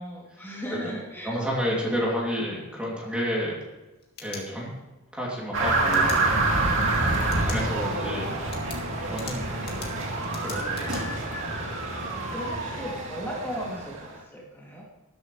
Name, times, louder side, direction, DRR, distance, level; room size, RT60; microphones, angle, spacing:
voice 1, 0.0-1.4 6.9-7.5 12.0-14.8, equal, 10° left, -4 dB, 2.9 m, -37 dB
voice 2, 1.2-3.5 4.2-4.8 5.1-6.3 7.5-8.3 9.0-9.9 10.4-11.0, equal, 5° right, -5 dB, 2.9 m, -30 dB
sound 1, 3.8-5.0 5.9-6.2 7.2-7.6 8.0-8.1 8.5-11.0, left 6 dB, 50° left, 2.4 m, -42 dB
sound 2, 5.5-14.1, right 2 dB, 60° right, 2.5 m, -27 dB
13.5 x 13.0 x 3.3 m, 1.1 s
head